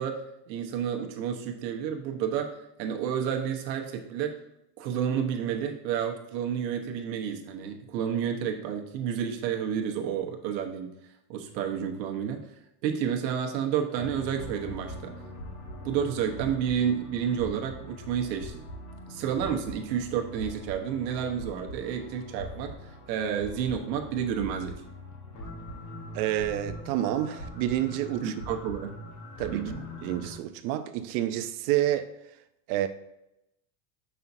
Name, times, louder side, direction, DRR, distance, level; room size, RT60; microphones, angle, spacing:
voice 1, 0.0-4.4 4.8-10.9 11.3-12.4 12.8-15.1 15.8-18.6 19.1-22.8 23.1-24.8 28.2-28.9 29.5-29.8, right 8 dB, 90° right, 1.2 m, -30 dB
sound 1, 13.9-30.4, left 1 dB, 35° left, 1.2 m, -42 dB
voice 2, 26.1-28.6 29.4-29.7 30.0-32.1 32.7-32.9, right 13 dB, 60° right, 0.7 m, -29 dB
7.1 x 5.6 x 2.7 m
supercardioid pair, 150°, 50 cm